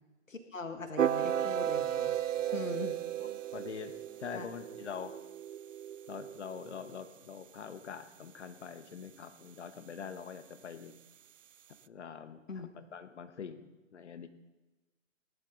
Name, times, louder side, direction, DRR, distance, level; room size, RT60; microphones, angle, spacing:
voice 1, 0.3-2.1 2.5-3.0 4.3-4.5 12.5-12.7, left 3 dB, 80° left, 6 dB, 1.9 m, -41 dB
sound 1, 1.0-7.0, right 10 dB, 75° right, 0.5 m, -34 dB
voice 2, 2.4-2.8 3.2-5.1 6.1-10.9 11.8-14.3, left 7 dB, 60° left, 10 dB, 1.5 m, -45 dB
18.5 x 12.0 x 4.0 m, 1.1 s
figure-of-eight pair, 130°, 38 cm